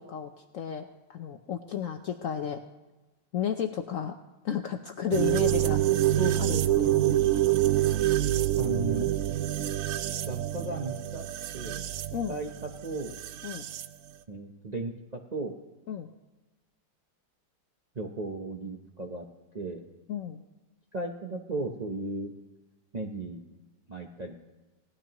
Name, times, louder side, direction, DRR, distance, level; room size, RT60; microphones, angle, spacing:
voice 1, 0.0-2.6 3.3-4.2 4.4-5.8 6.4-7.1 12.1-12.4 13.4-13.7 15.9-16.1 20.1-20.4, left 9 dB, 70° left, 5 dB, 0.8 m, -33 dB
sound 1, 5.1-13.9, right 13 dB, 80° right, 0.7 m, -27 dB
voice 2, 5.5-7.2 8.6-9.1 10.3-11.3 11.5-11.8 12.3-12.5 12.8-13.1 14.3-15.5 17.9-19.3 19.5-19.8 20.9-22.3 22.9-23.4 23.9-24.3, right 2 dB, 45° right, 0 dB, 0.5 m, -35 dB
18.0 x 12.0 x 3.0 m, 1.1 s
omnidirectional pair, 2.0 m